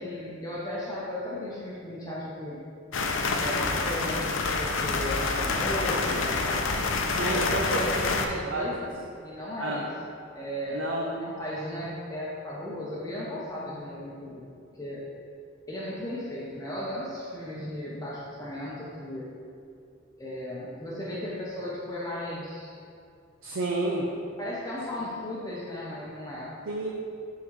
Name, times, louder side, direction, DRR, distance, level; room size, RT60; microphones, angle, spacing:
voice 1, 0.0-2.6 3.4-4.3 4.6-6.6 7.2-9.9 10.4-14.5 14.7-15.0 15.7-19.3 20.2-22.7 24.4-26.5, left 1 dB, 20° left, -7 dB, 0.7 m, -35 dB
sound 1, 2.9-8.3, left 3 dB, 90° left, 0.5 m, -27 dB
voice 2, 7.2-8.0 8.4-8.7 9.6-9.8 10.7-11.3 23.4-24.1 26.7-26.9, right 2 dB, 90° right, -2 dB, 0.6 m, -30 dB
9.0 x 3.7 x 3.2 m, 2.5 s
head